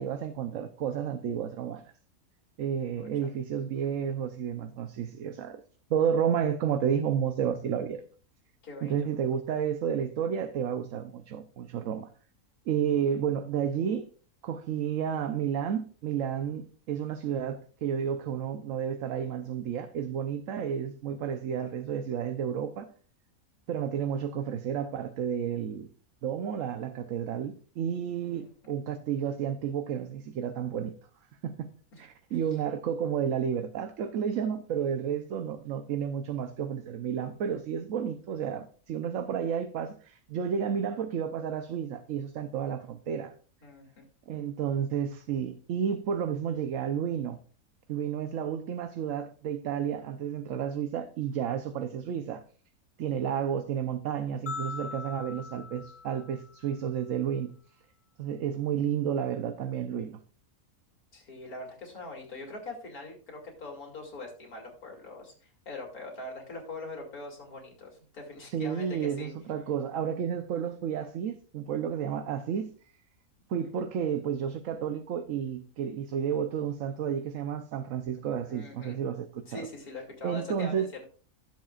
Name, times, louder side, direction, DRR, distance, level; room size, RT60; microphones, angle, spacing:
voice 1, 0.0-1.8 2.6-5.6 5.9-8.0 8.8-12.1 12.7-14.1 14.4-22.9 23.7-25.9 26.2-30.9 31.4-31.7 32.0-43.3 44.3-47.4 47.9-52.4 53.0-57.5 58.2-60.2 68.5-72.7 73.5-79.7 80.2-81.0, right 8 dB, 65° right, 1.1 m, -31 dB
voice 2, 3.0-3.3 8.6-8.9 28.2-28.5 31.9-32.1 43.6-44.0 61.1-69.3 73.7-73.8 78.5-79.0 79.4-81.0, left 2 dB, 80° left, 3.2 m, -42 dB
sound 1, 54.5-56.8, left 5 dB, 50° left, 0.9 m, -41 dB
16.0 x 7.6 x 2.4 m
omnidirectional pair, 1.5 m